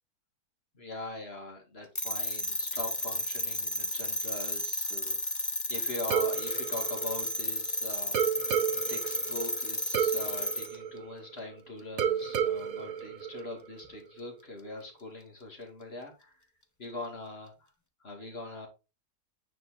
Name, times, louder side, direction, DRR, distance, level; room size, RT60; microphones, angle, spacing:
voice 1, 0.7-8.2 8.9-16.3 16.8-17.5 18.0-18.7, left 2 dB, 40° left, 2 dB, 2.5 m, -42 dB
sound 1, 2.0-10.8, left 2 dB, 15° left, 0.6 m, -33 dB
sound 2, 6.1-7.7 8.1-11.5 12.0-13.9, right 8 dB, 70° right, 1.2 m, -32 dB
9.0 x 4.5 x 3.9 m, 0.27 s
omnidirectional pair, 1.7 m